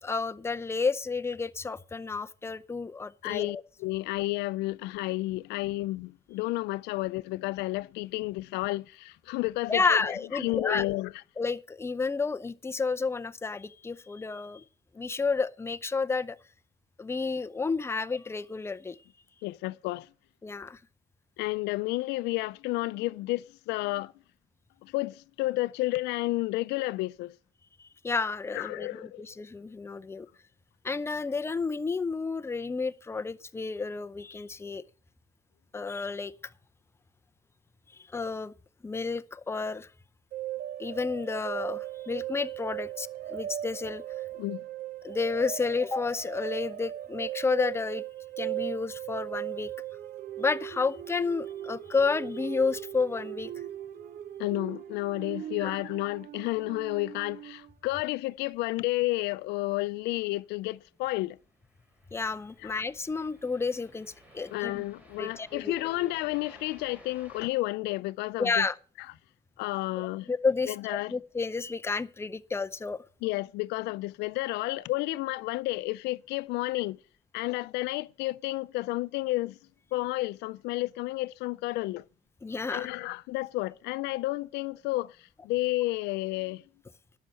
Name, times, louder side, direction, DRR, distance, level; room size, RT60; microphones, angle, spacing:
voice 1, 0.0-3.6 9.7-10.8 11.4-14.6 14.9-16.4 17.0-19.0 20.4-20.8 28.0-30.3 30.8-34.8 35.7-36.3 38.1-38.5 38.8-39.9 40.8-44.0 45.0-48.0 48.4-49.7 50.4-53.5 55.6-55.8 62.1-64.8 65.2-65.8 68.4-68.8 70.0-73.0 82.4-82.9, left 4 dB, 15° left, 0.6 m, -31 dB
voice 2, 3.2-11.1 19.4-20.1 21.4-24.1 24.8-27.3 28.5-29.3 44.4-44.6 54.4-61.4 62.6-62.7 64.5-68.7 69.0-69.1 69.6-70.3 70.7-71.1 73.2-77.0 77.3-79.6 79.9-82.0 82.7-86.6, left 19 dB, 85° left, 0.4 m, -31 dB
sound 1, 40.3-57.7, right 12 dB, 55° right, 0.6 m, -38 dB
sound 2, 60.8-67.5, left 1 dB, 10° right, 2.9 m, -56 dB
11.5 x 5.6 x 7.5 m
cardioid pair, 110°, 17 cm